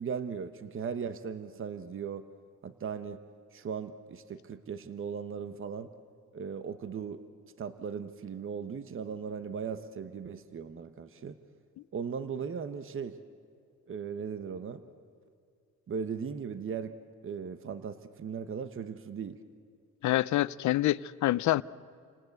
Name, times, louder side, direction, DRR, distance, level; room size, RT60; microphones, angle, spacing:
voice 1, 0.0-2.2 2.6-3.2 3.5-5.9 6.3-7.2 7.6-11.4 11.9-13.2 13.9-14.8 15.9-17.0 17.2-19.4, right 6 dB, 45° right, 1.2 m, -38 dB
voice 2, 20.0-21.6, left 15 dB, 70° left, 0.6 m, -26 dB
29.0 x 19.0 x 8.1 m
cardioid pair, 90°, 30 cm